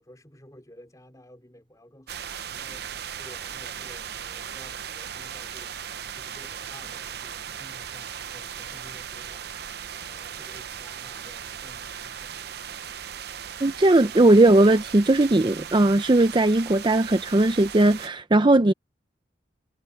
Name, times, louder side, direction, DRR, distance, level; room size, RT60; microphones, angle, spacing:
voice 1, 0.0-9.5 9.9-12.4, left 1 dB, 20° left, 4.1 m, -52 dB
sound 1, 2.1-18.1, right 8 dB, 60° right, 0.8 m, -38 dB
voice 2, 13.6-18.7, right 2 dB, 25° right, 0.5 m, -18 dB
head